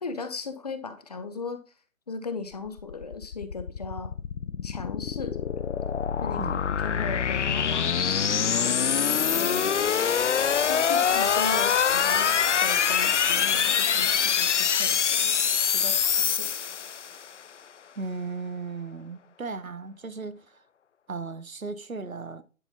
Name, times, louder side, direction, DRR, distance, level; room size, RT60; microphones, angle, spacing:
voice 1, 0.0-1.6 2.1-4.1 4.6-5.7 6.2-8.7 9.3-9.9 10.5-16.5, left 4 dB, 30° left, 1.0 m, -37 dB
sound 1, 2.7-17.3, left 7 dB, 60° left, 0.5 m, -25 dB
voice 2, 6.4-6.7 18.0-20.6 21.1-22.4, right 4 dB, 75° right, 1.3 m, -36 dB
10.5 x 5.7 x 4.1 m
figure-of-eight pair, 150°, 41 cm